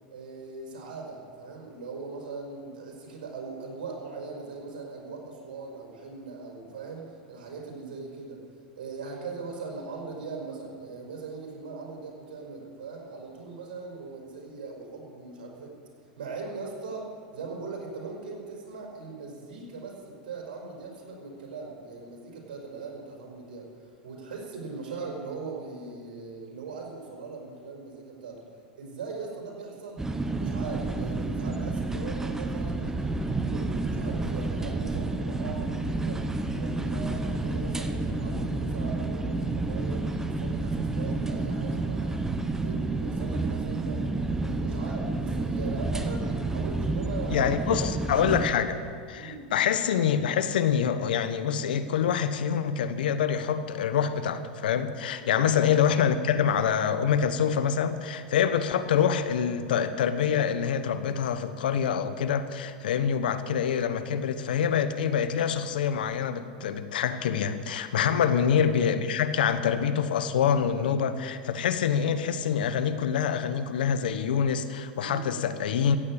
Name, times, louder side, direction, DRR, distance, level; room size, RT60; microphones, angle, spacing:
voice 1, 0.1-8.5 8.7-15.8 16.2-28.5 28.8-30.0 30.4-42.2 42.6-44.1 44.4-47.6 49.1-49.5 55.2-55.5 67.9-68.2 75.0-75.3, right 4 dB, 80° right, 0 dB, 5.0 m, -40 dB
sound 1, 30.0-48.5, right 2 dB, 10° right, 1.1 m, -30 dB
voice 2, 47.3-48.8 49.1-76.0, left 8 dB, 85° left, 11 dB, 1.1 m, -26 dB
15.0 x 8.8 x 8.6 m, 2.1 s
hypercardioid pair, 110°, 5 cm